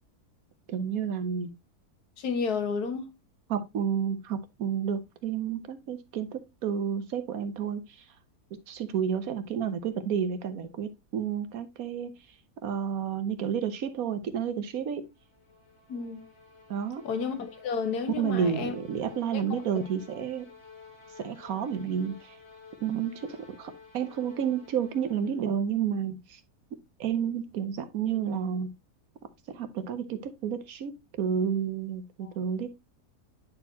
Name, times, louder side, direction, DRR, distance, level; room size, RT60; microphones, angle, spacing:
voice 1, 0.7-1.5 3.5-8.0 8.7-12.1 12.6-15.0 16.7-17.0 18.2-20.5 21.2-22.4 22.8-26.4 27.0-28.7 29.5-30.9 31.2-32.7, right 8 dB, 65° right, 1.3 m, -30 dB
voice 2, 2.2-3.1 15.9-16.2 17.0-18.7 19.3-19.8 32.2-32.3, left 5 dB, 70° left, 1.7 m, -32 dB
sound 1, 15.0-25.6, left 5 dB, 55° left, 2.1 m, -52 dB
9.4 x 4.3 x 2.8 m
omnidirectional pair, 1.7 m